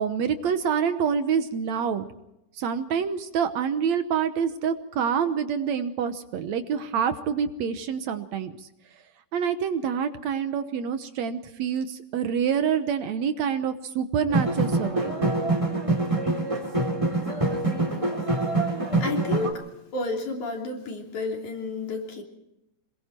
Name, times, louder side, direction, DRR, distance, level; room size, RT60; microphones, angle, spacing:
voice 1, 0.0-2.1 2.6-8.5 9.3-15.4, right 7 dB, 65° right, 9 dB, 2.2 m, -27 dB
sound 1, 14.3-19.5, right 2 dB, 10° right, 3.0 m, -25 dB
voice 2, 19.0-19.6 19.9-22.2, left 3 dB, 65° left, 2 dB, 4.6 m, -31 dB
27.0 x 21.5 x 4.4 m, 0.87 s
omnidirectional pair, 3.6 m